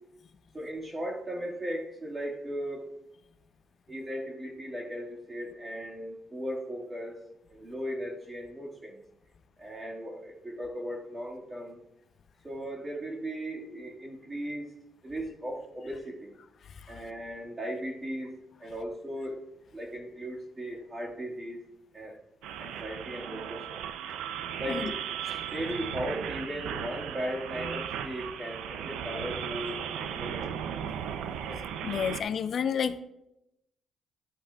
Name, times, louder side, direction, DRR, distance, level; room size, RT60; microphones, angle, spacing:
voice 1, 0.5-2.9 3.9-7.2 7.5-9.0 9.6-11.8 12.4-14.7 15.0-16.4 16.9-19.4 19.7-21.6 21.9-22.2 22.6-23.8 24.6-25.0 25.2-30.6 31.4-31.6, equal, 25° right, -3 dB, 1.9 m, -37 dB
sound 1, 22.4-32.2, right 8 dB, 90° right, 0.5 m, -36 dB
voice 2, 31.8-33.0, left 7 dB, 55° left, 12 dB, 0.6 m, -30 dB
12.5 x 8.5 x 2.4 m, 0.87 s
cardioid pair, 90°, 0 cm